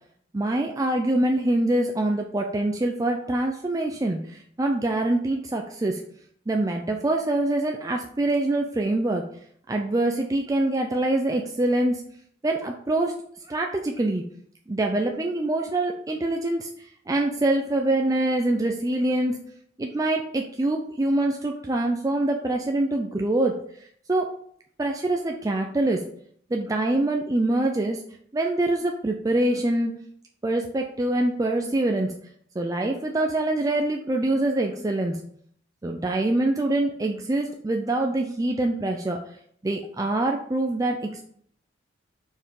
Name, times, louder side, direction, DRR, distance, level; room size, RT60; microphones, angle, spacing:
voice 1, 0.3-6.0 6.5-9.2 9.7-12.0 12.4-13.1 13.5-14.2 14.7-19.4 19.8-24.3 24.8-26.1 26.5-28.0 28.3-29.9 30.4-32.1 32.6-35.2 35.8-39.2 39.6-41.2, right 2 dB, 20° right, 2 dB, 0.4 m, -25 dB
5.5 x 4.6 x 4.7 m, 0.65 s
head